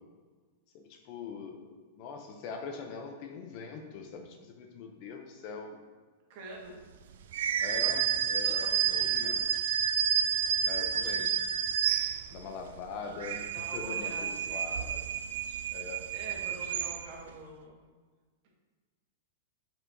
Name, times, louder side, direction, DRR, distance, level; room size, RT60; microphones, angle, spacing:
voice 1, 0.7-5.8 7.6-9.4 10.6-11.4 12.3-13.5 13.7-15.0 15.7-16.1, left 5 dB, 35° left, 4 dB, 0.6 m, -42 dB
voice 2, 6.3-6.8 7.8-7.9 8.3-9.5 13.5-14.9 16.1-17.8, right 2 dB, 40° right, -2 dB, 1.6 m, -46 dB
sound 1, 7.3-12.6 13.0-17.3, right 9 dB, 60° right, 0.3 m, -30 dB
7.7 x 4.5 x 2.7 m, 1.4 s
supercardioid pair, 170°, 0 cm